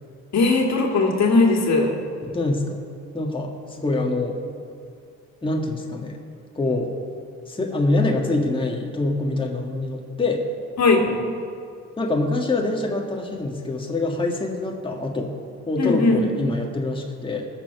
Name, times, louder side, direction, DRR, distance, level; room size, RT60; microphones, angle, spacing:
voice 1, 0.3-1.9 10.8-11.0 15.8-16.2, left 3 dB, 60° left, 1 dB, 2.2 m, -18 dB
voice 2, 2.2-2.8 3.1-4.4 5.4-6.2 6.6-6.9 7.5-10.4 11.1-11.2 12.0-15.3 15.7-17.5, left 2 dB, 15° left, 0 dB, 1.7 m, -25 dB
20.0 x 6.9 x 6.0 m, 2.4 s
cardioid pair, 90°, 30 cm